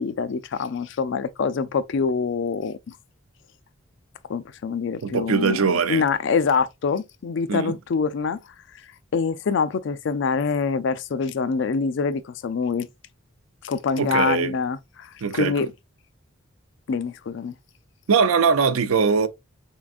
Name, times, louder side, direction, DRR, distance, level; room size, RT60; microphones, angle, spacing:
voice 1, 0.0-2.8 4.3-5.6 5.9-8.4 9.1-12.9 13.6-15.7 16.9-17.5, left 5 dB, 60° left, 0.4 m, -25 dB
voice 2, 5.0-6.0 7.5-7.8 14.0-14.6 15.2-15.7 18.1-19.3, right 5 dB, 80° right, 0.5 m, -21 dB
3.7 x 3.4 x 2.4 m
head